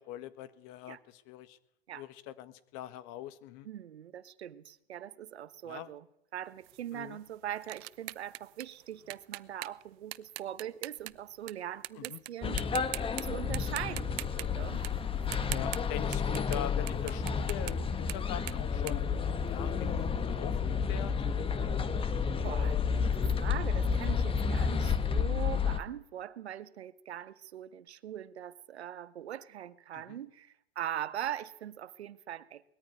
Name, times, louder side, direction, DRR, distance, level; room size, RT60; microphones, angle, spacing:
voice 1, 0.0-1.6 2.0-3.7 5.7-5.9 6.9-7.2 12.0-12.2 13.6-13.8 15.4-19.0 19.5-20.6 20.9-21.1 29.9-30.2, left 12 dB, 50° left, 13 dB, 1.7 m, -43 dB
voice 2, 3.6-6.0 6.3-12.8 13.2-14.8 15.2-15.6 22.4-32.6, right 11 dB, 90° right, 14 dB, 1.2 m, -41 dB
sound 1, 6.6-11.5 11.8-12.3 12.6-13.2 13.5-16.6 16.9-19.9, right 25 dB, 50° right, 0.8 m, -42 dB
sound 2, 12.4-25.8, left 6 dB, 15° left, 1.3 m, -31 dB
20.5 x 14.0 x 9.7 m, 0.79 s
hypercardioid pair, 120°, 31 cm